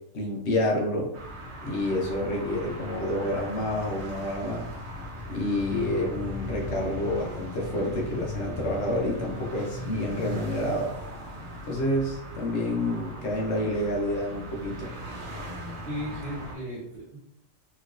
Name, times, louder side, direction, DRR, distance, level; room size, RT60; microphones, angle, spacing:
voice 1, 0.1-1.1 1.6-4.7 5.3-10.9 11.7-14.9, left 1 dB, 60° left, -1 dB, 1.0 m, -28 dB
sound 1, 1.1-16.5, equal, 60° right, 1.0 m, -38 dB
voice 2, 15.8-17.2, equal, 35° right, -7 dB, 1.2 m, -35 dB
3.2 x 3.0 x 2.5 m, 0.78 s
omnidirectional pair, 1.4 m